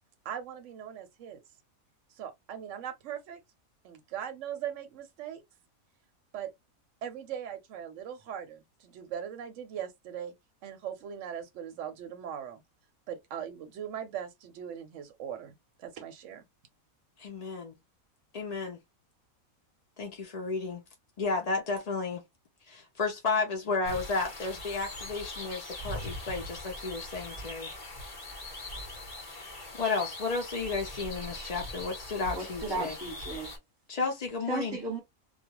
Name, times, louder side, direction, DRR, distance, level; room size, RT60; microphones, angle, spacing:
voice 1, 0.2-1.4 2.1-3.4 3.8-5.4 6.3-6.5 7.0-10.3 10.6-12.6 13.1-16.4, right 9 dB, 70° right, 0.9 m, -40 dB
voice 2, 17.2-17.8 18.3-18.8 20.0-20.8 21.2-22.2 22.7-27.7 29.8-32.9 33.9-34.8, left 4 dB, 60° left, 0.4 m, -32 dB
sound 1, 23.8-33.6, left 1 dB, 30° left, 0.9 m, -41 dB
voice 3, 32.3-33.5 34.5-35.0, right 3 dB, 20° right, 1.0 m, -35 dB
2.4 x 2.3 x 2.8 m
omnidirectional pair, 1.5 m